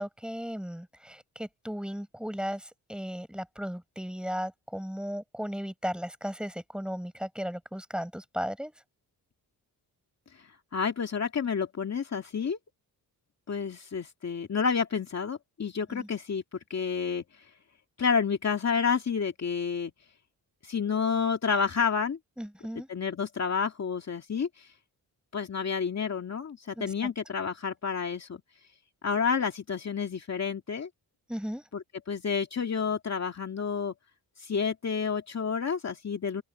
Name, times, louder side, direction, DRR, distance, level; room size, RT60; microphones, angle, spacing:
voice 1, 0.0-8.7 15.9-16.1 22.4-22.9 26.8-26.9 31.3-31.6, equal, ahead, 7.4 m, -36 dB
voice 2, 10.7-12.6 13.5-16.4 16.7-17.2 18.0-19.9 20.6-22.2 22.9-24.7 25.3-28.4 29.0-30.9 31.7-33.9 34.4-36.4, left 6 dB, 45° left, 2.3 m, -29 dB
open air
cardioid pair, 85°, 37 cm